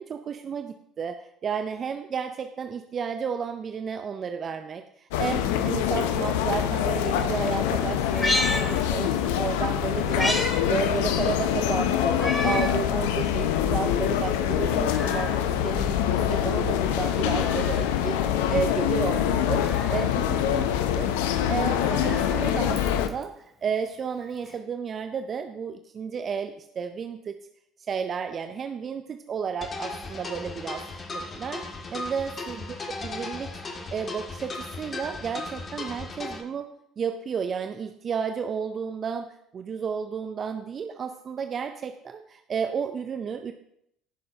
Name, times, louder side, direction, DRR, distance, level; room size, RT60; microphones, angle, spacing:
voice 1, 0.0-19.6 19.9-27.4 27.9-30.8 31.1-31.6 31.9-36.7 37.0-43.5, right 6 dB, 45° right, 8 dB, 0.6 m, -32 dB
sound 1, 5.1-23.1, left 10 dB, 80° left, 0.6 m, -25 dB
Meow, 8.0-9.4 9.7-10.6 10.9-11.0 12.1-12.8 13.3-13.4 14.4-15.4 16.9-17.9 19.3-20.1 21.6-23.2 24.5-24.6, left 1 dB, 20° left, 2.4 m, -32 dB
sound 2, 29.6-36.4, left 3 dB, 35° left, 1.6 m, -36 dB
16.0 x 6.4 x 2.8 m, 0.73 s
hypercardioid pair, 65°, 0 cm